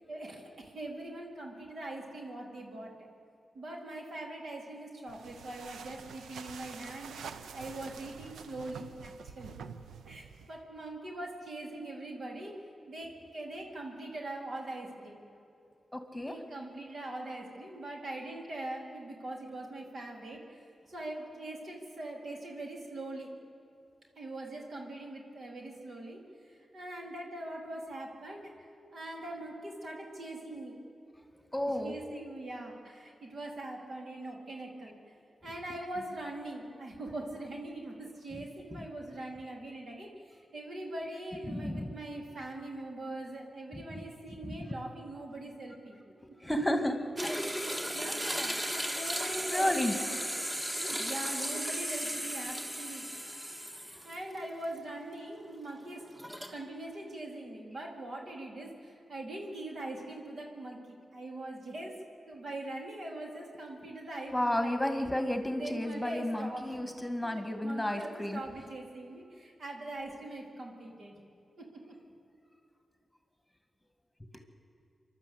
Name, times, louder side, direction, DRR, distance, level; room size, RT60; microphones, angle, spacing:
voice 1, 0.1-2.9 3.5-9.5 10.1-15.2 16.3-23.3 24.2-30.8 31.6-35.0 35.4-46.0 47.2-50.2 50.8-53.1 53.9-56.2 56.5-65.1 65.5-66.9 67.2-71.2 71.6-72.0, right 1 dB, 65° right, 0 dB, 4.0 m, -42 dB
sound 1, 5.1-10.6, right 6 dB, 90° right, 0.8 m, -47 dB
voice 2, 15.9-16.4 31.5-31.9 38.7-38.9 41.5-41.9 43.9-44.0 44.4-44.8 46.4-47.3 49.5-50.0 64.3-68.4, left 1 dB, 10° left, 6 dB, 2.2 m, -32 dB
sound 2, 47.2-54.4 54.8-54.9 56.1-56.5, equal, 20° right, 2.5 m, -35 dB
26.0 x 12.0 x 8.6 m, 2.7 s
cardioid pair, 50°, 0 cm